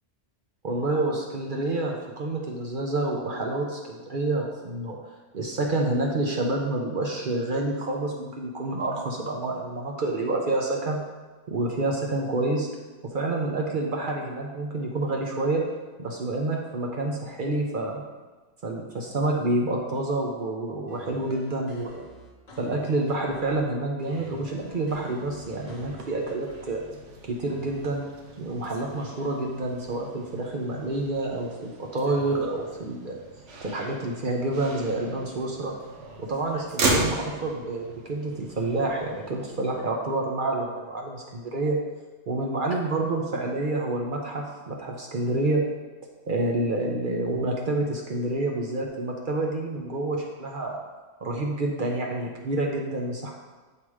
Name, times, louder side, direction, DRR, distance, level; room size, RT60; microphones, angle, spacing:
voice 1, 0.6-5.0 5.3-11.0 11.5-12.7 13.0-15.6 16.0-18.0 18.6-22.0 22.6-26.8 27.2-28.0 28.4-33.2 33.6-35.7 36.2-41.8 42.3-45.6 46.3-50.8 51.2-53.3, right 2 dB, 50° right, 0 dB, 0.8 m, -28 dB
sound 1, 20.9-23.7 24.1-26.9 27.5-28.0, left 1 dB, 40° left, 0.8 m, -47 dB
Motor vehicle (road), 24.0-39.8, right 2 dB, 85° right, 1.2 m, -36 dB
7.3 x 2.9 x 4.7 m, 1.3 s
omnidirectional pair, 1.2 m